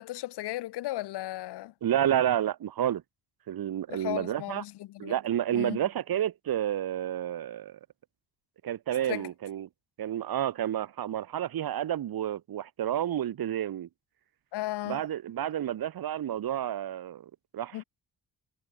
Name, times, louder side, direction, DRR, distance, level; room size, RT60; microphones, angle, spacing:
voice 1, 0.0-1.7 3.9-5.1 5.5-5.8 9.1-9.3 14.5-15.0 17.7-17.8, left 16 dB, 85° left, 1.0 m, -35 dB
voice 2, 1.8-3.0 3.5-4.6 5.0-7.8 8.6-9.7 10.0-13.9 14.9-17.2 17.5-17.8, right 11 dB, 60° right, 1.3 m, -30 dB
cardioid pair, 65°, 39 cm